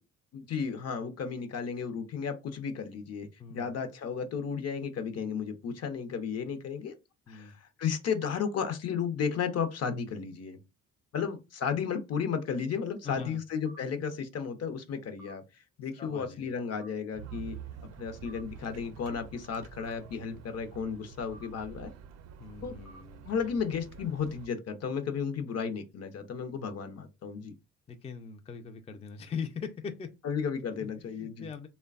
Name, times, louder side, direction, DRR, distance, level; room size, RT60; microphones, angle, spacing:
voice 1, 0.3-6.9 7.3-7.5 7.8-10.6 11.1-15.4 15.8-17.6 18.0-21.9 22.6-22.8 23.2-27.5 30.2-31.5, left 6 dB, 55° left, 0.7 m, -33 dB
voice 2, 3.4-3.7 7.3-7.6 13.0-13.4 15.8-16.6 22.4-23.3 27.9-30.1 30.8-31.7, left 6 dB, 20° left, 0.4 m, -41 dB
sound 1, 13.7-13.8 15.2-15.4 16.7-16.9 18.3-18.4 19.8-20.0 21.3-21.5 22.8-23.0, right 2 dB, 80° left, 0.9 m, -52 dB
sound 2, 17.1-24.5, right 8 dB, 60° right, 0.5 m, -47 dB
3.2 x 2.2 x 2.3 m
cardioid pair, 90°, 30 cm